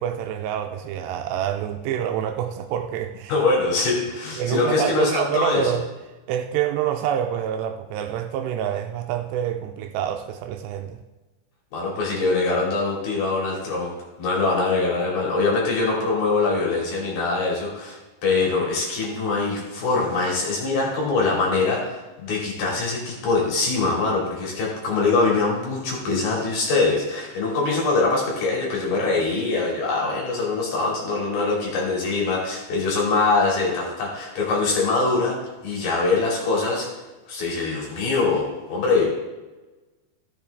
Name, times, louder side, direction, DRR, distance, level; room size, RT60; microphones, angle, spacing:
voice 1, 0.0-3.4 4.4-5.9 6.3-11.0, right 10 dB, 85° right, 6 dB, 2.6 m, -27 dB
voice 2, 3.3-5.7 11.7-13.9 14.2-35.4 35.6-36.9 37.3-39.1, left 3 dB, 60° left, -3 dB, 4.1 m, -23 dB
14.0 x 7.4 x 3.4 m, 1.2 s
omnidirectional pair, 5.2 m